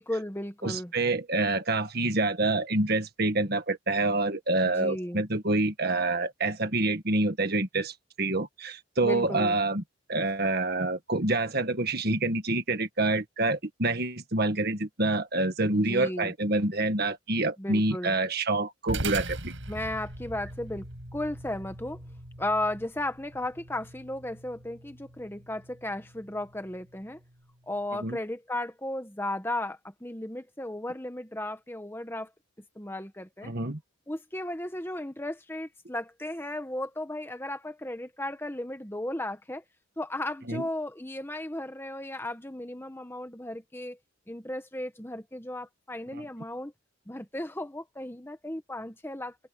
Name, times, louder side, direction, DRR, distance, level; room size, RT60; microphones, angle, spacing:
voice 1, 0.0-0.9 4.7-5.2 9.0-9.6 15.7-16.3 17.6-18.1 19.7-20.9 21.1-22.0 22.4-27.2 27.7-32.3 32.7-33.5 34.1-39.6 40.0-44.0 44.3-46.7 47.1-49.4, left 1 dB, 10° left, 1.2 m, -35 dB
voice 2, 0.6-9.8 10.1-19.5 28.0-28.2 33.4-33.8 40.5-40.6, right 2 dB, 45° right, 1.7 m, -27 dB
sound 1, 18.9-27.5, right 2 dB, 65° right, 7.1 m, -41 dB
head